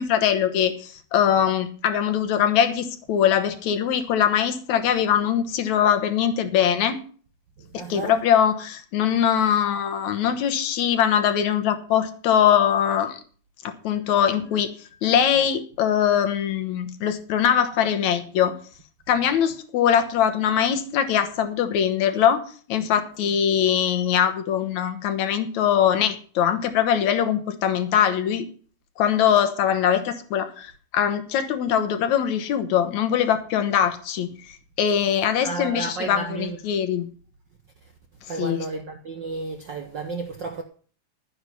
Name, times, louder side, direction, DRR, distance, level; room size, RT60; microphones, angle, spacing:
voice 1, 0.0-7.0 7.7-13.2 13.6-14.7 15.0-18.5 19.1-28.5 29.0-37.1 38.4-38.6, left 9 dB, 70° left, 2.5 m, -22 dB
voice 2, 7.6-8.2 35.4-36.6 38.3-40.6, right 3 dB, 65° right, 1.1 m, -32 dB
12.0 x 9.6 x 5.5 m
omnidirectional pair, 3.4 m